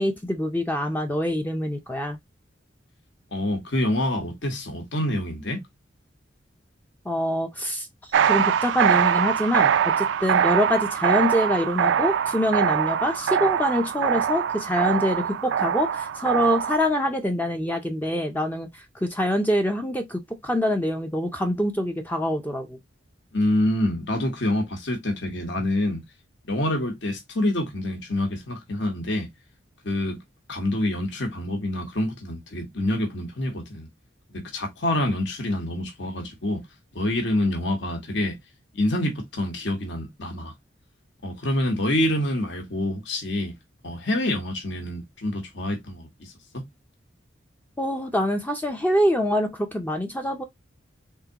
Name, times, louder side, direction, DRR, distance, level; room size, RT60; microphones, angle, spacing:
voice 1, 0.0-2.2 7.1-22.8 47.8-50.4, equal, 10° left, 0.4 m, -25 dB
voice 2, 3.3-5.6 23.3-26.0 26.5-29.3 29.8-30.2 30.5-33.9 34.3-36.6 36.9-38.4 38.7-40.5 41.2-43.5 43.8-46.6, left 1 dB, 65° left, 1.1 m, -26 dB
sound 1, 8.1-16.8, right 8 dB, 65° right, 0.3 m, -23 dB
3.7 x 3.5 x 2.8 m
head